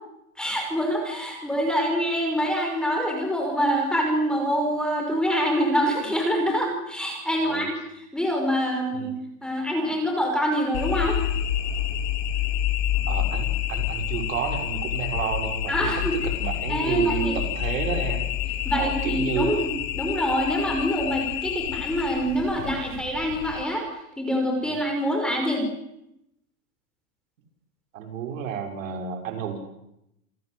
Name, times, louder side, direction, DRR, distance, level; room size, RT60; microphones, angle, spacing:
voice 1, 0.4-7.7 8.1-9.1 9.4-11.2 15.7-16.1 16.7-17.4 18.7-23.9 24.2-25.7, equal, ahead, 2 dB, 5.6 m, -25 dB
sound 1, 10.7-23.6, left 11 dB, 45° left, 3.4 m, -28 dB
voice 2, 13.1-16.0 16.4-18.3 18.7-19.5 24.6-24.7 27.9-29.6, right 7 dB, 70° right, 5 dB, 6.2 m, -30 dB
28.5 x 20.0 x 8.1 m, 0.83 s
supercardioid pair, 165°, 41 cm